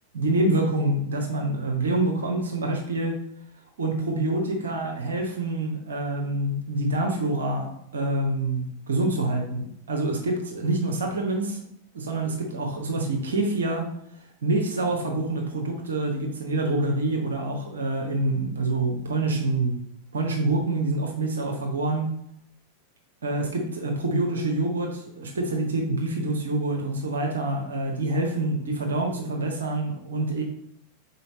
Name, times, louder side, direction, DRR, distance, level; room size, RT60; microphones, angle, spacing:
voice 1, 0.1-3.1 3.8-11.6 11.9-13.9 14.4-19.8 20.1-22.1 23.2-30.4, right 2 dB, 65° right, 2 dB, 0.9 m, -26 dB
5.5 x 4.1 x 4.2 m, 0.73 s
figure-of-eight pair, 90°, 0 cm